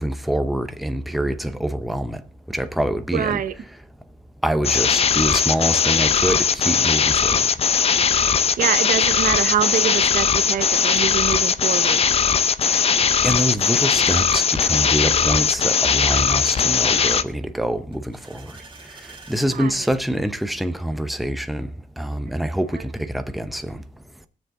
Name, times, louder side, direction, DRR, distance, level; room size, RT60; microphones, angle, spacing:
voice 1, 0.0-2.2 2.5-3.4 4.4-7.5 12.7-12.8 13.2-18.5 19.3-21.7 22.0-23.8, equal, ahead, 0.8 m, -25 dB
voice 2, 3.1-3.5 8.6-12.0 16.9-17.2 19.6-19.7, right 9 dB, 80° right, 0.8 m, -25 dB
sound 1, 4.6-17.2, left 6 dB, 45° left, 0.6 m, -19 dB
sound 2, 17.9-19.5, right 4 dB, 35° right, 2.1 m, -45 dB
20.5 x 7.2 x 3.8 m
wide cardioid pair, 115°, 14 cm